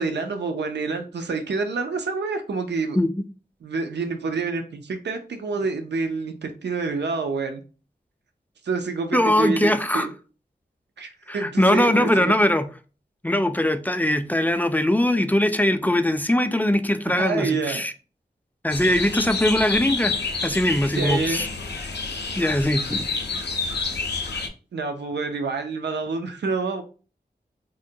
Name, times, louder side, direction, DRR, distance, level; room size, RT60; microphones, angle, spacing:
voice 1, 0.0-3.0 3.6-7.6 8.6-10.1 11.0-12.3 17.1-17.8 20.9-21.4 24.7-26.8, right 4 dB, 80° right, 0.4 m, -27 dB
voice 2, 9.1-10.1 11.3-12.7 13.2-17.9 18.6-20.2 20.4-21.4 22.4-23.1, left 1 dB, 10° left, 0.3 m, -21 dB
sound 1, 18.7-24.5, left 4 dB, 75° left, 0.5 m, -28 dB
3.7 x 2.1 x 2.6 m
wide cardioid pair, 50°, 18 cm